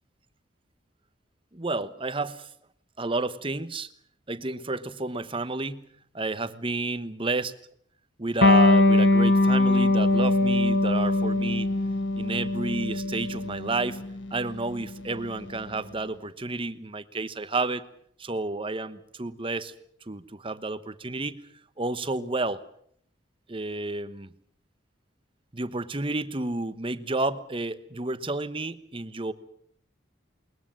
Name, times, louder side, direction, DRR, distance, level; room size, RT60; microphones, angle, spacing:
voice 1, 1.5-2.5 3.0-3.9 4.3-5.9 6.1-7.5 8.2-11.7 12.2-14.0 14.3-17.9 18.2-19.7 20.1-21.4 21.8-22.6 23.5-24.3 25.5-29.3, right 2 dB, 30° right, 13 dB, 1.0 m, -31 dB
Electric guitar, 8.4-15.6, left 2 dB, 80° left, 1.5 m, -22 dB
21.0 x 21.0 x 7.6 m, 0.66 s
head